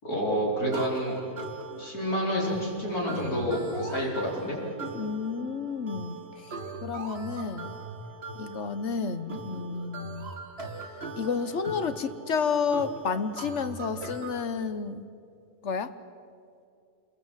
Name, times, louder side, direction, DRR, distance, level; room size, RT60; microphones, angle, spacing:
voice 1, 0.0-1.2 1.8-4.6, equal, 65° left, -3 dB, 5.1 m, -28 dB
sound 1, 0.7-14.4, right 3 dB, 40° right, 2.2 m, -40 dB
voice 2, 4.9-6.6 6.8-7.7 8.3-10.3 11.2-15.0 15.6-15.9, left 5 dB, 50° left, 11 dB, 1.2 m, -31 dB
27.5 x 22.0 x 7.4 m, 2.5 s
omnidirectional pair, 1.7 m